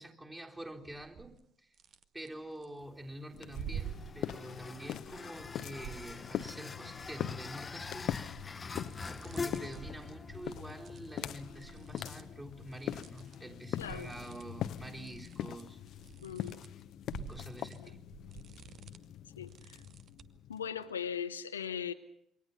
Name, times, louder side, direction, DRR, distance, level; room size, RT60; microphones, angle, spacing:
voice 1, 0.0-1.7 2.1-8.1 9.1-15.8 17.2-18.0, right 1 dB, 15° right, 0 dB, 3.8 m, -47 dB
sound 1, 0.8-1.4 1.7-2.7 3.3-6.6 7.0-13.4 13.6-20.4, right 9 dB, 45° right, 1.1 m, -49 dB
sound 2, 2.8-16.1, left 4 dB, 25° left, 0.9 m, -46 dB
sound 3, 3.3-20.8, left 11 dB, 55° left, 0.9 m, -43 dB
voice 2, 13.8-14.1 16.2-16.6 19.4-19.8 20.5-21.9, left 8 dB, 80° left, 10 dB, 0.8 m, -39 dB
27.5 x 23.5 x 5.7 m, 0.72 s
figure-of-eight pair, 50°, 0 cm